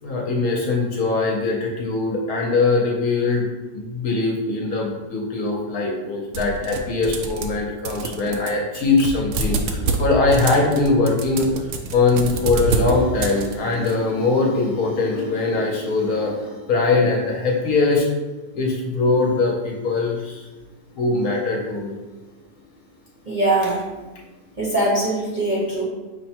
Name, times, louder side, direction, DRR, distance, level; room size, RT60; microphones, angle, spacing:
voice 1, 0.0-3.5 3.7-18.1 18.5-20.4 20.9-22.0, left 3 dB, 65° left, -1 dB, 1.1 m, -21 dB
sound 1, 6.3-7.6 7.9-13.9, right 3 dB, 85° right, 0.6 m, -27 dB
voice 2, 23.3-23.8 24.6-25.8, right 2 dB, 35° right, -7 dB, 0.8 m, -21 dB
5.4 x 2.1 x 4.3 m, 1.2 s
omnidirectional pair, 1.9 m